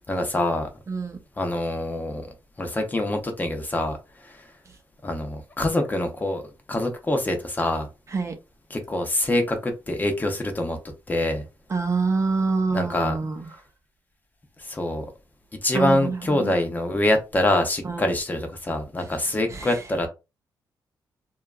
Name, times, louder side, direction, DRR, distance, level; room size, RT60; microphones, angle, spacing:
voice 1, 0.1-0.7 1.4-2.3 2.6-4.0 4.2-4.4 5.0-6.4 6.7-7.9 8.7-10.8 11.1-11.4 12.7-13.2 14.6-15.1 15.6-20.1, left 1 dB, 20° left, 0.6 m, -25 dB
voice 2, 0.9-1.2 8.1-8.3 11.7-13.4 15.7-16.5 17.8-18.1 19.2-19.8, right 4 dB, 40° right, 0.6 m, -26 dB
2.7 x 2.3 x 2.3 m
cardioid pair, 110°, 8 cm